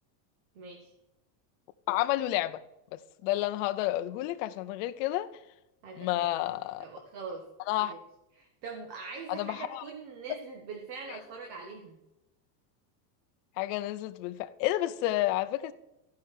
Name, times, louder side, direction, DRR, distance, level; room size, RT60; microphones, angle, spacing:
voice 1, 0.5-0.9 5.8-6.4 6.8-7.4 7.7-8.0 8.3-12.0, right 4 dB, 50° right, 1.6 m, -43 dB
voice 2, 1.9-2.6 2.9-5.3 6.0-6.8 7.7-7.9 9.3-9.8 13.6-15.7, left 15 dB, 50° left, 0.6 m, -30 dB
13.5 x 5.7 x 4.8 m
supercardioid pair, 160°, 49 cm